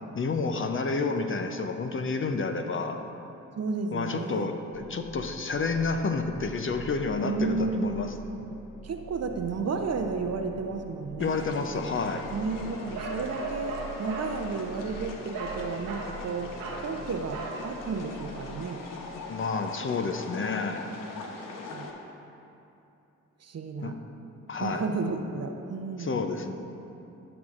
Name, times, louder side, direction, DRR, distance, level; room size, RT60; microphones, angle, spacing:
voice 1, 0.1-3.0 3.9-8.1 11.2-12.3 19.1-20.9 23.8-23.9 24.5-24.9 26.0-26.5, left 4 dB, 35° left, 6 dB, 0.6 m, -30 dB
voice 2, 3.6-4.5 7.2-8.1 8.8-11.5 12.3-18.8 21.7-21.9 23.4-24.0 24.6-26.3, right 4 dB, 45° right, 5 dB, 0.7 m, -32 dB
sound 1, 4.7-18.8, right 2 dB, 90° left, 1.2 m, -46 dB
sound 2, 11.2-21.9, left 3 dB, 65° left, 0.9 m, -42 dB
Bark, 12.9-14.3 15.3-15.6 15.8-16.1 16.6-16.9 17.3-17.6, right 4 dB, 90° right, 1.2 m, -36 dB
13.5 x 5.9 x 2.5 m, 2.8 s
hypercardioid pair, 45°, 35 cm